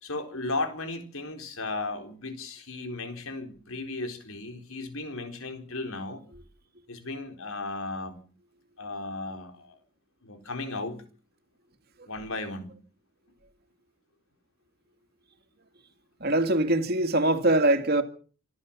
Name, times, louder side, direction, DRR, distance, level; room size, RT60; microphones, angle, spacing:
voice 1, 0.0-6.2 6.9-8.2 8.8-9.8 10.2-11.0 12.1-12.7, left 2 dB, 75° left, 4.2 m, -35 dB
voice 2, 16.2-18.0, right 1 dB, 45° right, 2.2 m, -23 dB
27.0 x 13.0 x 7.3 m
head